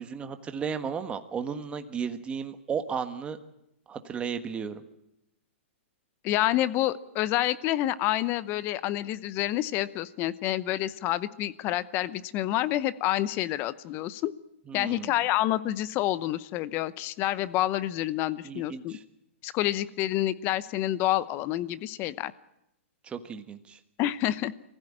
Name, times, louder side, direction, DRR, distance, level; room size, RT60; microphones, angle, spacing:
voice 1, 0.0-3.4 3.9-4.8 14.7-15.1 18.4-19.0 23.0-23.8, right 6 dB, 15° right, 9 dB, 1.5 m, -34 dB
voice 2, 6.2-14.3 14.7-19.0 19.4-22.3 24.0-24.5, left 14 dB, 30° left, 17 dB, 0.8 m, -28 dB
24.0 x 15.5 x 8.9 m, 0.84 s
hypercardioid pair, 145°, 7 cm